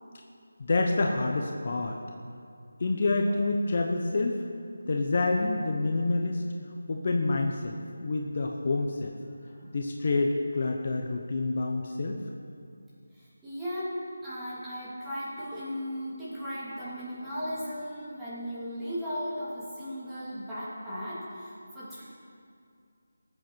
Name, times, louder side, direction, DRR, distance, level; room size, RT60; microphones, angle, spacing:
voice 1, 0.6-2.0 2.8-4.4 4.9-6.4 6.9-9.1 9.7-12.2, left 3 dB, 40° left, 2 dB, 1.0 m, -27 dB
voice 2, 9.5-9.8 13.1-22.0, equal, 5° right, -13 dB, 2.7 m, -36 dB
19.0 x 7.7 x 4.6 m, 2.4 s
figure-of-eight pair, 170°, 0 cm